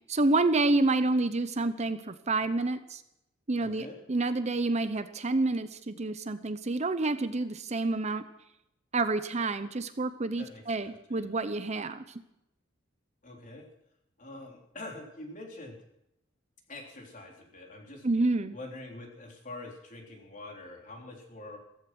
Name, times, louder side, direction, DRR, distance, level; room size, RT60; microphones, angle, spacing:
voice 1, 0.1-3.0 3.5-8.2 8.9-12.0 18.0-18.5, right 2 dB, 35° right, 11 dB, 0.8 m, -28 dB
voice 2, 3.6-4.0 10.4-11.3 13.2-13.7 14.2-15.8 16.7-18.1 18.5-21.6, left 2 dB, 45° left, 1 dB, 3.8 m, -45 dB
15.0 x 15.0 x 6.2 m, 0.82 s
head